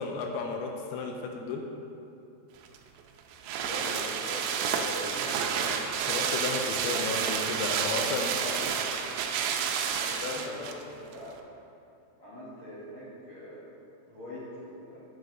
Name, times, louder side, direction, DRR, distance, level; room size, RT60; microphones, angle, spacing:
voice 1, 0.0-1.6 6.1-8.4 8.6-8.7 10.1-10.6, left 4 dB, 80° left, 2 dB, 2.8 m, -33 dB
sound 1, 2.7-10.8 11.1-11.2, right 7 dB, 85° right, 2.4 m, -30 dB
voice 2, 3.6-5.7 8.3-9.1 10.0-11.3 12.2-13.7 14.1-15.0, equal, 60° left, -11 dB, 1.9 m, -42 dB
8.7 x 7.8 x 3.6 m, 2.7 s
omnidirectional pair, 5.4 m